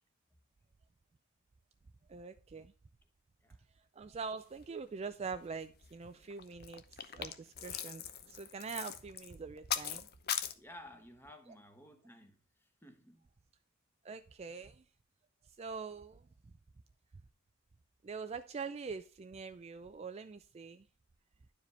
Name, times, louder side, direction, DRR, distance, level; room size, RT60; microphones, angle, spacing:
voice 1, 2.1-2.7 4.0-10.1 14.0-14.8 15.6-16.2 18.0-20.9, right 5 dB, 30° right, 0.3 m, -44 dB
sound 1, 5.3-5.4 5.6-5.9 6.3-10.5, left 9 dB, 45° left, 0.7 m, -40 dB
voice 2, 10.5-13.3, left 1 dB, 10° left, 1.1 m, -55 dB
11.0 x 4.9 x 3.3 m
head